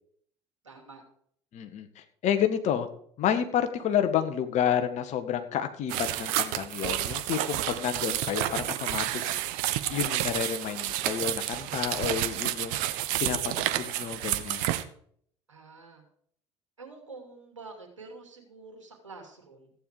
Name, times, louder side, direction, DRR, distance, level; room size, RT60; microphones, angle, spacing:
voice 1, 0.6-1.0 15.5-16.0 16.8-19.7, right 3 dB, 85° right, 2 dB, 2.7 m, -47 dB
voice 2, 1.5-2.9 3.2-9.2 9.9-12.8 13.2-14.6, left 9 dB, 50° left, 9 dB, 1.6 m, -30 dB
sound 1, 5.9-14.8, right 14 dB, 60° right, 1.0 m, -30 dB
15.0 x 9.4 x 4.9 m, 0.62 s
figure-of-eight pair, 60°, 15 cm